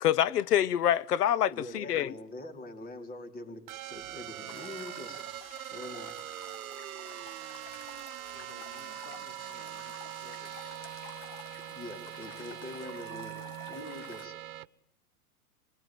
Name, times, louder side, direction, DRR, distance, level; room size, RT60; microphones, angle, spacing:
voice 1, 0.0-2.1, left 11 dB, 80° left, 1.2 m, -26 dB
voice 2, 1.5-5.2 5.7-6.2 11.6-14.3, left 2 dB, 20° left, 4.3 m, -44 dB
sound 1, 3.7-14.7, right 14 dB, 60° right, 1.4 m, -42 dB
sound 2, 4.5-14.3, left 8 dB, 35° left, 2.6 m, -51 dB
voice 3, 8.3-10.6 10.9-11.2, left 7 dB, 60° left, 5.5 m, -56 dB
26.5 x 23.0 x 9.1 m
hypercardioid pair, 130°, 46 cm